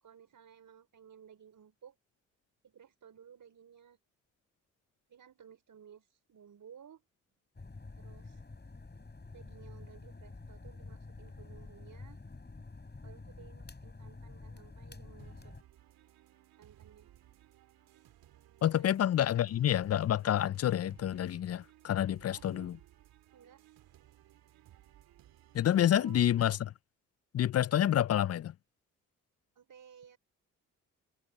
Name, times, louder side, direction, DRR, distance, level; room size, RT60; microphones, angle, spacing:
voice 1, 0.0-1.9 2.6-4.0 5.1-7.0 8.0-8.4 9.3-12.2 13.0-15.5 16.6-17.1 18.7-18.8 22.3-22.7 23.3-23.6 25.8-26.2 29.5-30.2, right 8 dB, 60° right, 4.7 m, -56 dB
sound 1, 7.5-15.6, left 3 dB, 30° left, 5.9 m, -49 dB
sound 2, 15.2-26.6, right 13 dB, 75° right, 2.6 m, -60 dB
voice 2, 18.6-22.8 25.5-26.6 27.3-28.5, left 11 dB, 45° left, 0.5 m, -28 dB
hypercardioid pair, 45°, 36 cm